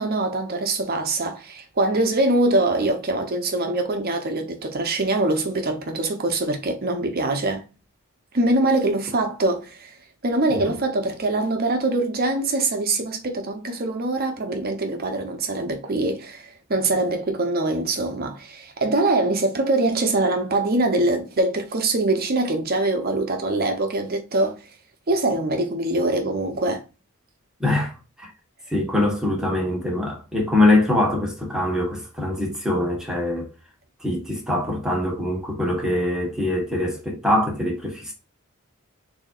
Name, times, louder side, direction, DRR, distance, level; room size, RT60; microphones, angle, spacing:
voice 1, 0.0-7.7 8.3-9.9 10.2-24.6 25.1-26.8, right 2 dB, 45° right, 0.7 m, -23 dB
voice 2, 27.6-28.3 28.7-33.5 34.0-38.1, left 1 dB, 5° right, 1.2 m, -23 dB
7.0 x 2.8 x 2.4 m
head